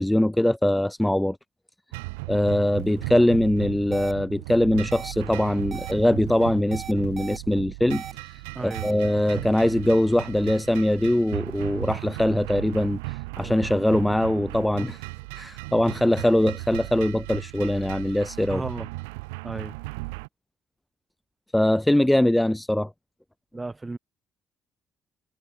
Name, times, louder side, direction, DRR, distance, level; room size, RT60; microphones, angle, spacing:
voice 1, 0.0-1.4 2.3-15.0 15.3-18.6 21.5-22.9, left 1 dB, 5° left, 0.6 m, -22 dB
sound 1, 1.9-20.3, right 27 dB, 70° right, 1.0 m, -36 dB
sound 2, 3.9-4.1 4.9-5.1 5.7-5.9 6.7-7.4 7.9-8.1 8.7-8.9, right 7 dB, 45° right, 1.3 m, -38 dB
voice 2, 8.5-8.9 18.5-18.9 19.4-19.8 23.5-24.0, right 3 dB, 20° right, 4.3 m, -34 dB
figure-of-eight pair, 45°, 0 cm